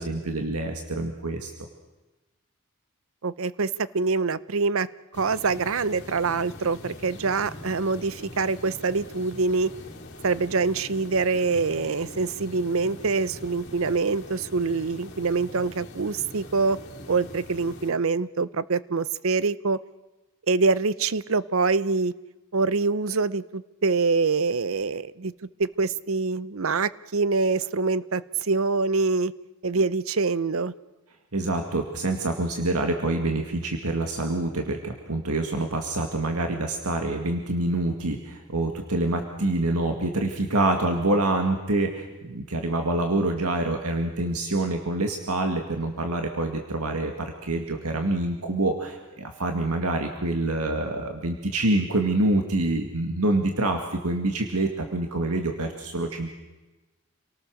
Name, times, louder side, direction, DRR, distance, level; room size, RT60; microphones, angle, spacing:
voice 1, 0.0-1.5 31.3-56.3, right 2 dB, 85° right, 4 dB, 2.1 m, -26 dB
voice 2, 3.2-4.9 5.1-9.7 10.2-16.8 17.1-19.8 20.5-22.1 22.5-25.3 25.6-29.3 29.6-30.7, right 4 dB, 65° right, 17 dB, 0.7 m, -25 dB
sound 1, 5.1-17.9, left 1 dB, 50° left, 3.4 m, -43 dB
28.0 x 18.5 x 6.4 m, 1.1 s
head